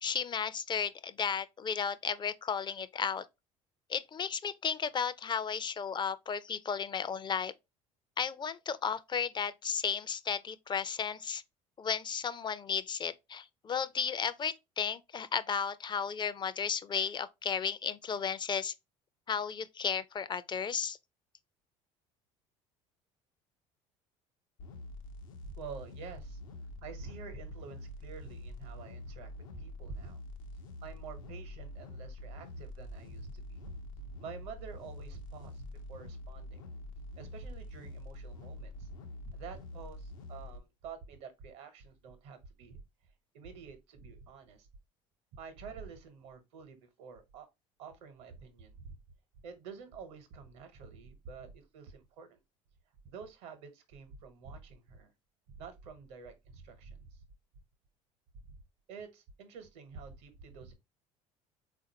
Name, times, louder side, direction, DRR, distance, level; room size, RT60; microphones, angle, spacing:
voice 1, 0.0-3.2 3.9-7.5 8.2-11.4 11.8-18.7 19.3-21.0, left 6 dB, 25° left, 0.4 m, -34 dB
sound 1, 24.6-40.6, left 1 dB, 85° left, 0.6 m, -46 dB
voice 2, 25.4-26.4 26.8-30.2 30.8-36.6 37.2-38.9 39.2-42.8 43.3-44.7 45.4-47.5 47.8-48.9 49.4-52.4 53.0-55.1 55.5-57.2 58.3-58.4 58.9-60.7, right 5 dB, 70° right, 1.0 m, -48 dB
3.9 x 2.5 x 2.7 m
hypercardioid pair, 70°, 17 cm